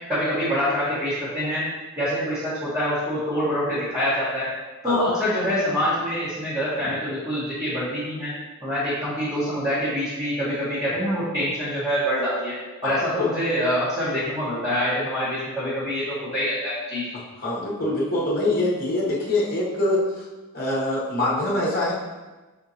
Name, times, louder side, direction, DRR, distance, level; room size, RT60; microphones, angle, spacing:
voice 1, 0.1-1.7 2.0-4.5 4.8-8.3 8.6-12.5 12.8-17.1, equal, 15° right, -13 dB, 1.2 m, -25 dB
voice 2, 12.8-13.3 17.4-20.3 20.5-21.9, left 1 dB, 40° left, -5 dB, 1.0 m, -24 dB
5.2 x 3.6 x 2.8 m, 1.2 s
head